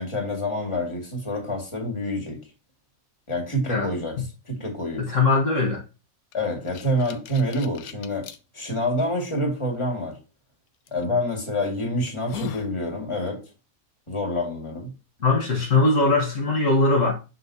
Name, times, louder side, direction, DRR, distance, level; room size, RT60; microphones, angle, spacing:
voice 1, 0.0-2.4 3.3-5.1 6.3-8.3 8.5-10.2 10.9-13.4 14.1-14.9, left 1 dB, 20° left, 2.0 m, -27 dB
voice 2, 5.1-5.8 15.2-17.1, left 3 dB, 60° left, 1.7 m, -20 dB
sound 1, 6.3-8.4 9.0-9.1 10.9-11.1 11.6-11.7 12.1-12.7, left 9 dB, 75° left, 1.1 m, -38 dB
6.6 x 5.4 x 2.7 m
omnidirectional pair, 1.6 m